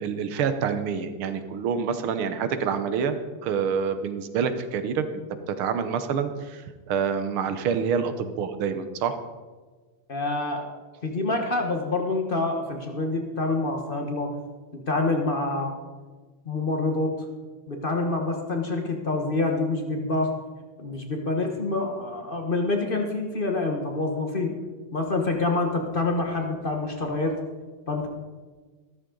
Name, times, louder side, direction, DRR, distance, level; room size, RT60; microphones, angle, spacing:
voice 1, 0.0-5.0 5.5-9.2, right 6 dB, 80° right, 9 dB, 1.8 m, -27 dB
voice 2, 10.1-10.7 11.0-14.3 14.7-15.8 16.4-17.1 17.7-20.3 20.8-24.5 24.9-27.4 27.9-28.1, left 2 dB, 30° left, 3 dB, 1.1 m, -26 dB
13.5 x 13.0 x 3.8 m, 1.4 s
omnidirectional pair, 2.4 m